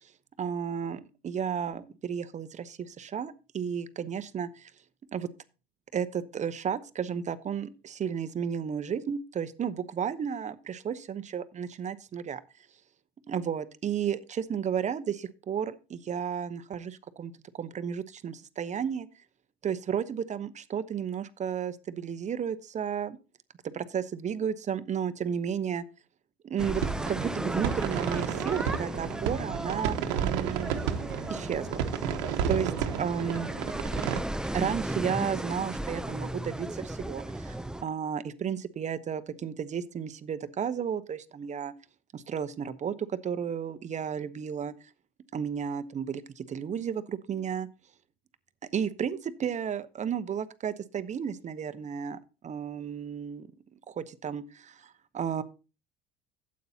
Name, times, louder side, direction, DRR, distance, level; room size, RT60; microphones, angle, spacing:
voice 1, 0.4-4.7 5.1-5.3 5.9-12.4 13.3-19.1 19.6-23.2 23.6-25.8 26.4-26.8 27.1-30.8 31.3-32.2 32.5-32.7 33.0-33.5 34.4-41.7 42.1-44.7 45.3-47.7 48.6-53.5 53.9-55.4, right 7 dB, 35° right, 13 dB, 0.8 m, -33 dB
sound 1, 26.6-37.8, right 1 dB, 5° right, 0.5 m, -35 dB
sound 2, 26.8-34.2, right 9 dB, 85° right, 1.1 m, -32 dB
12.0 x 8.5 x 2.8 m, 0.32 s
supercardioid pair, 95°, 21 cm